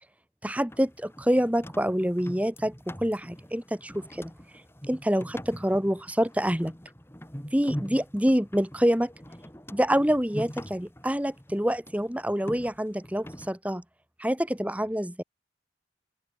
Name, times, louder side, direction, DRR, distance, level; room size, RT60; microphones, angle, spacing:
voice 1, 0.4-4.3 4.9-6.7 7.5-9.1 9.7-13.8 14.2-15.2, equal, 10° right, 1.9 m, -26 dB
sound 1, 0.7-13.5, equal, 15° left, 6.7 m, -43 dB
open air
head